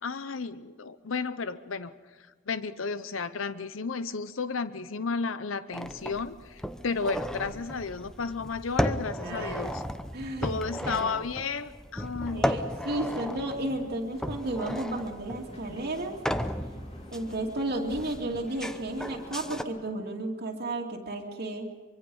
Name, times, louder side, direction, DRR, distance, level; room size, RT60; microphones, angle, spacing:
voice 1, 0.0-1.9 2.5-9.8 10.4-12.6, left 4 dB, 85° left, 13 dB, 0.8 m, -33 dB
sound 1, 5.7-19.6, equal, 5° left, 0.8 m, -35 dB
voice 2, 9.1-9.8 10.1-10.6 10.9-11.0 12.3-16.2 17.1-21.8, right 1 dB, 55° right, 0 dB, 2.5 m, -33 dB
sound 2, 12.9-19.8, left 1 dB, 30° left, 3.0 m, -49 dB
24.5 x 24.0 x 5.5 m, 1.4 s
head